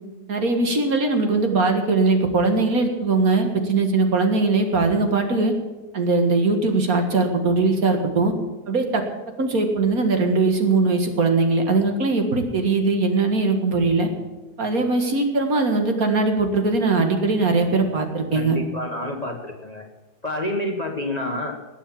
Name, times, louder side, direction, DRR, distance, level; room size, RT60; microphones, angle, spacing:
voice 1, 0.3-5.5 5.9-8.3 8.7-9.0 9.4-14.1 14.6-18.6, right 3 dB, 60° right, 4 dB, 2.2 m, -20 dB
voice 2, 18.3-19.8 20.2-21.6, left 1 dB, 25° left, 3 dB, 1.2 m, -28 dB
19.5 x 7.4 x 7.4 m, 1.2 s
omnidirectional pair, 1.7 m